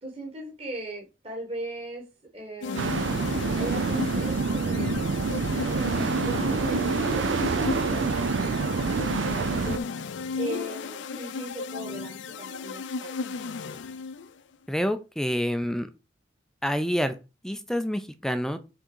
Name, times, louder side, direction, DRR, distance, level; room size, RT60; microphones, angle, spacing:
voice 1, 0.0-2.0 2.3-2.9 3.5-5.1 5.7-9.8 10.3-13.1, right 1 dB, 30° right, -1 dB, 1.6 m, -39 dB
sound 1, 2.6-14.4, left 4 dB, 70° left, 0.5 m, -35 dB
sound 2, 2.8-9.8, right 4 dB, 75° right, 0.5 m, -27 dB
voice 2, 14.7-15.9 16.6-17.1 17.4-18.6, equal, 5° left, 10 dB, 0.5 m, -27 dB
6.5 x 3.7 x 4.6 m, 0.29 s
head